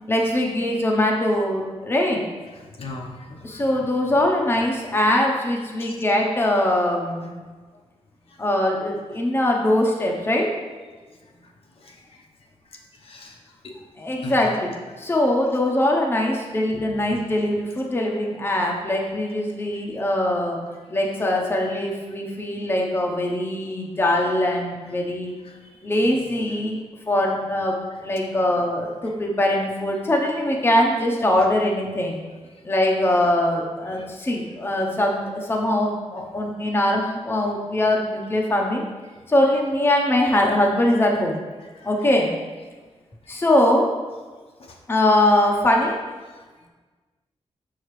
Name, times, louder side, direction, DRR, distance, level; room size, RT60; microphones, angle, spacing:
voice 1, 0.1-2.2 3.4-7.3 8.4-10.5 14.0-14.7 15.0-20.6 20.9-25.3 25.8-26.8 27.1-32.2 32.6-38.8 39.3-41.5 41.8-42.3 43.3-43.9 44.9-46.0, left 1 dB, 20° left, 0 dB, 0.8 m, -22 dB
voice 2, 2.5-3.9 5.8-6.0 8.3-8.4 11.4-11.5 11.8-12.2 12.7-13.7 14.2-14.4 25.4-25.8 34.0-34.1 39.1-39.2 41.7-41.9 44.6-44.8 46.4-46.5, left 2 dB, 55° left, 0 dB, 0.9 m, -41 dB
6.6 x 6.4 x 3.1 m, 1.3 s
wide cardioid pair, 150°, 11 cm